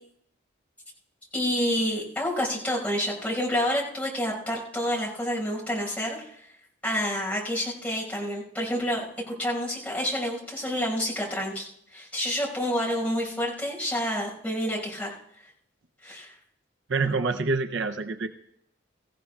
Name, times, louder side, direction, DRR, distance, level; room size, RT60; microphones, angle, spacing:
voice 1, 1.3-6.2 6.8-9.0 9.3-11.7 11.9-15.1 16.0-16.3, equal, 5° left, -4 dB, 5.3 m, -28 dB
voice 2, 16.9-18.3, right 4 dB, 65° right, 6 dB, 0.6 m, -26 dB
24.0 x 15.5 x 2.4 m, 0.71 s
head